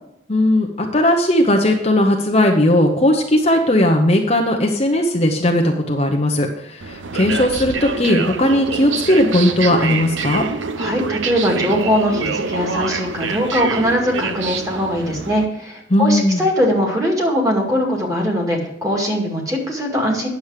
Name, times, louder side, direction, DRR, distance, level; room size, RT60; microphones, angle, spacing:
voice 1, 0.3-10.4 15.9-16.4, left 1 dB, 30° left, 2 dB, 0.8 m, -17 dB
sound 1, 6.8-15.5, right 5 dB, 75° right, 0.7 m, -26 dB
voice 2, 10.8-20.3, equal, 15° right, 0 dB, 2.1 m, -20 dB
9.7 x 7.2 x 4.8 m, 0.82 s
head